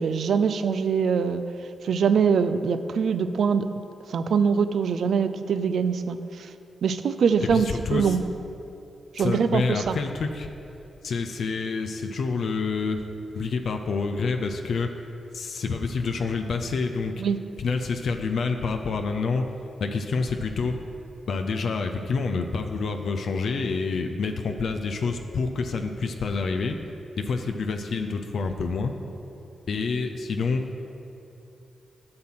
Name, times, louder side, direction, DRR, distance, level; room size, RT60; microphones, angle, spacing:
voice 1, 0.0-1.4 1.8-3.7 4.1-6.5 6.8-8.2 9.1-10.0 17.2-17.4, right 6 dB, 80° right, 11 dB, 0.4 m, -23 dB
voice 2, 7.4-8.2 9.2-10.5 11.0-13.0 13.3-14.9 15.3-17.1 17.6-19.5 19.8-20.8 21.3-26.8 27.2-28.9 29.7-30.6, left 4 dB, 75° left, 5 dB, 0.5 m, -27 dB
7.6 x 6.0 x 5.7 m, 2.7 s
cardioid pair, 65°, 0 cm